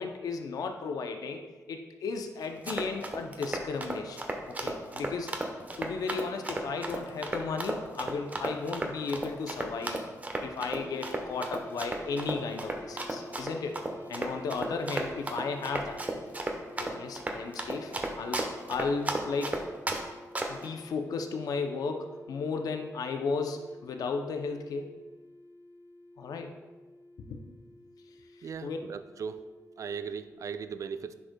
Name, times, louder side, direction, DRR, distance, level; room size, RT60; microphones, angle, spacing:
voice 1, 0.0-4.2 4.5-5.3 5.8-10.0 10.4-13.8 14.1-16.0 16.8-19.6 20.5-24.9 26.2-26.6 27.2-27.5 28.4-28.8, left 4 dB, 75° left, 5 dB, 0.5 m, -35 dB
Run, 2.4-20.0 20.4-20.7, right 2 dB, 25° right, 0.9 m, -34 dB
sound 1, 10.6-30.3, left 1 dB, 55° left, 1.7 m, -51 dB
voice 2, 28.4-29.4 29.8-31.1, right 6 dB, 60° right, 11 dB, 0.4 m, -38 dB
9.6 x 5.3 x 2.2 m, 1.2 s
cardioid pair, 75°, 6 cm